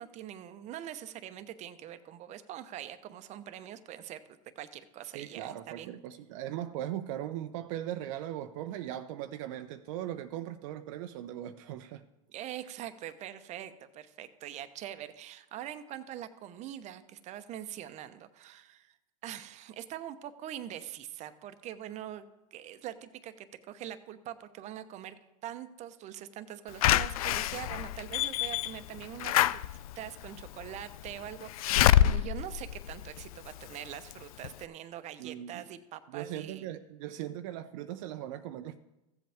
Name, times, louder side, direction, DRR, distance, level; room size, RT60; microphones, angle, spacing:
voice 1, 0.0-4.2 4.6-5.9 12.3-19.0 19.2-22.3 22.5-29.6 29.9-36.7, right 11 dB, 40° right, 0.9 m, -43 dB
voice 2, 5.1-12.0 35.2-35.6 36.1-38.8, right 12 dB, 65° right, 0.6 m, -39 dB
Slam / Alarm, 26.8-33.6 34.1-34.2 34.4-34.5, left 12 dB, 80° left, 0.4 m, -27 dB
15.0 x 7.7 x 3.5 m
hypercardioid pair, 110°, 18 cm